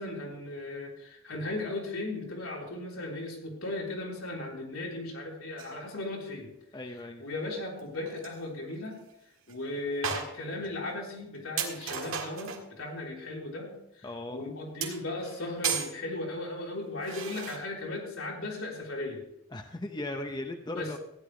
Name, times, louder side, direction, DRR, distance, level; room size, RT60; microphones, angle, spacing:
voice 1, 0.0-6.5 7.2-9.0 9.5-19.2 20.7-21.0, left 2 dB, 85° left, -2 dB, 3.5 m, -37 dB
sound 1, 5.6-5.8 7.8-7.9 8.1-8.4 8.9-9.0 9.5-9.6 10.0-10.7 11.1-11.2 11.6-12.7 14.8-16.0 17.0-17.6, right 7 dB, 75° right, 1.8 m, -35 dB
voice 2, 6.7-7.2 14.0-14.4 19.5-21.0, left 1 dB, 20° left, 5 dB, 0.6 m, -37 dB
15.0 x 10.5 x 3.2 m, 0.82 s
head